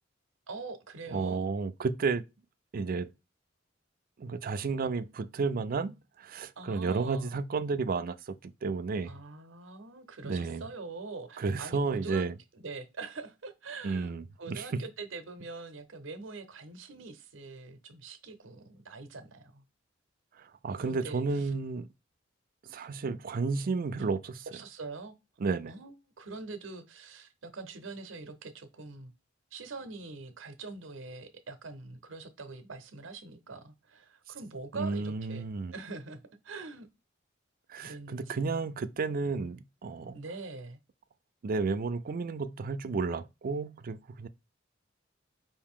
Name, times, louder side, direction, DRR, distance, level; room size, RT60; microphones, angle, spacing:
voice 1, 0.5-1.5 6.6-7.3 9.1-12.3 12.5-19.6 20.8-21.5 24.5-25.1 25.7-29.1 29.5-36.2 36.4-36.9 37.8-38.5 40.1-40.8, right 3 dB, 90° right, 0.8 m, -44 dB
voice 2, 1.1-2.2 2.7-3.1 4.2-9.1 10.2-10.6 11.4-12.3 13.8-14.7 20.4-21.9 22.7-24.5 25.4-25.7 34.7-35.7 37.7-40.2 41.4-44.3, right 4 dB, 50° right, 0.4 m, -32 dB
4.8 x 2.6 x 3.6 m
head